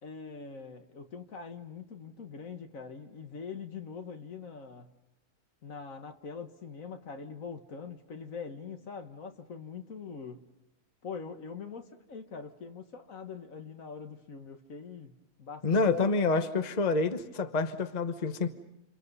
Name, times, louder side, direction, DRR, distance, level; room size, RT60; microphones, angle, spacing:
voice 1, 0.0-4.9 5.6-10.4 11.0-15.1 15.4-16.1, left 5 dB, 65° left, 6 dB, 1.8 m, -43 dB
voice 2, 15.6-18.5, left 3 dB, 30° left, 9 dB, 1.1 m, -27 dB
29.0 x 28.0 x 5.5 m, 0.92 s
omnidirectional pair, 1.6 m